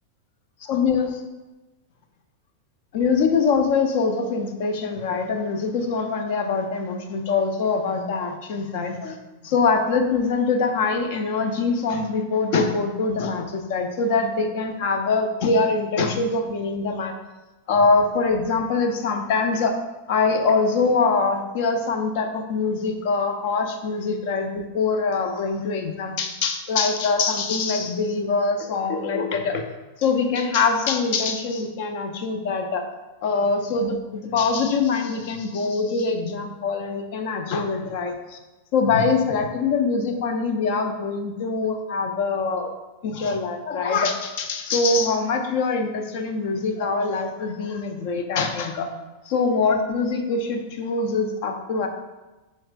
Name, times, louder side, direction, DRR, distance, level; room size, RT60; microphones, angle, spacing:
voice 1, 0.7-1.1 2.9-9.2 9.4-17.1 17.7-19.8 20.1-29.6 30.0-32.8 33.2-38.4 38.7-42.7 43.0-48.9 49.3-51.9, left 4 dB, 50° left, 6 dB, 0.7 m, -23 dB
7.6 x 5.5 x 2.5 m, 1.1 s
figure-of-eight pair, 90°, 0 cm